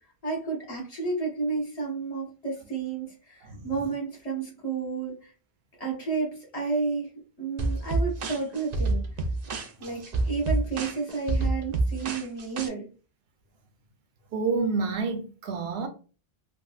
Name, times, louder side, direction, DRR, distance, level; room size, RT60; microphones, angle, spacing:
voice 1, 0.2-5.3 5.8-7.1 7.4-9.0 9.8-12.9, right 4 dB, 40° left, 1.2 m, -31 dB
sound 1, 7.6-12.7, right 2 dB, 55° right, 0.5 m, -28 dB
voice 2, 14.3-15.9, right 4 dB, 90° right, 0.9 m, -28 dB
3.4 x 2.4 x 2.4 m
omnidirectional pair, 1.0 m